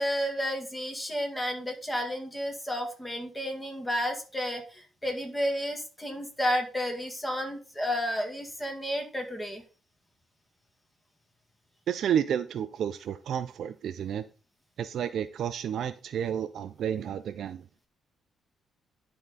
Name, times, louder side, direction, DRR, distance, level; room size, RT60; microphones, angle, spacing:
voice 1, 0.0-9.6, equal, 10° left, 2.0 m, -31 dB
voice 2, 11.9-14.2 14.8-17.6, right 9 dB, 70° right, 0.4 m, -31 dB
11.0 x 3.7 x 4.0 m
cardioid pair, 90°, 0 cm